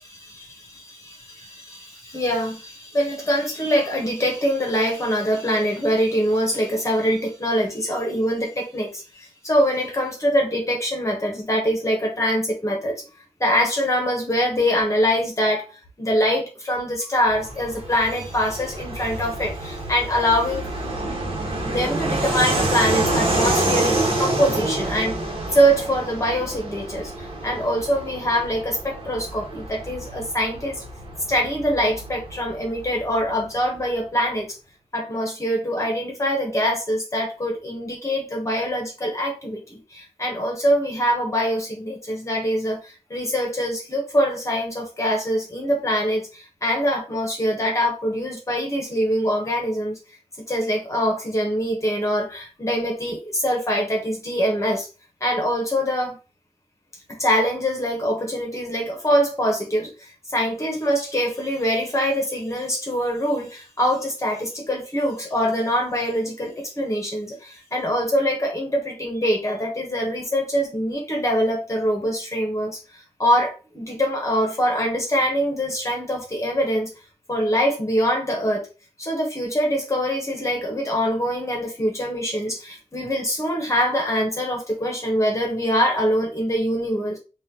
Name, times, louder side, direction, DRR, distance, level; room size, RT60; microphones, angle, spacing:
voice 1, 0.0-13.0 13.4-20.6 21.6-25.2 25.5-30.8 31.3-34.6 34.9-50.0 50.5-54.9 55.2-56.2 57.2-76.9 77.3-78.7 79.0-87.2, equal, 25° left, 1.1 m, -24 dB
Fixed-wing aircraft airplane, 17.3-33.4, right 2 dB, 50° right, 1.3 m, -28 dB
4.2 x 2.5 x 3.7 m
wide cardioid pair, 120°, 12 cm